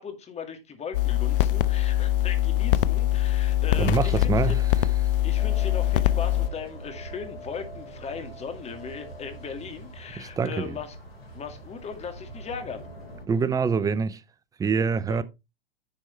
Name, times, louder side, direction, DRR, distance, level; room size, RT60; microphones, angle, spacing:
voice 1, 0.0-4.6 5.2-11.0 11.3-12.9 15.1-15.2, left 6 dB, 20° left, 2.2 m, -38 dB
sound 1, 0.9-6.5, left 13 dB, 65° left, 0.7 m, -23 dB
voice 2, 3.8-4.7 10.2-10.7 13.3-14.2 14.6-15.2, right 5 dB, 10° right, 0.6 m, -25 dB
sound 2, 5.4-13.3, equal, 85° left, 4.6 m, -43 dB
10.5 x 4.6 x 4.3 m
hypercardioid pair, 105°, 30 cm